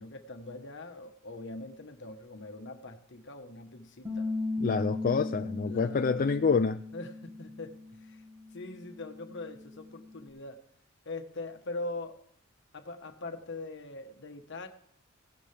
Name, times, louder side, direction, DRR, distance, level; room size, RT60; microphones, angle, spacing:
voice 1, 0.0-4.3 5.6-6.5 6.9-8.2 8.5-10.6 11.0-12.2 12.7-14.7, left 2 dB, 60° left, 1.3 m, -42 dB
Bass guitar, 4.0-10.3, left 2 dB, 15° right, 2.1 m, -38 dB
voice 2, 4.6-6.8, left 5 dB, 45° left, 0.4 m, -27 dB
17.0 x 12.5 x 3.4 m
head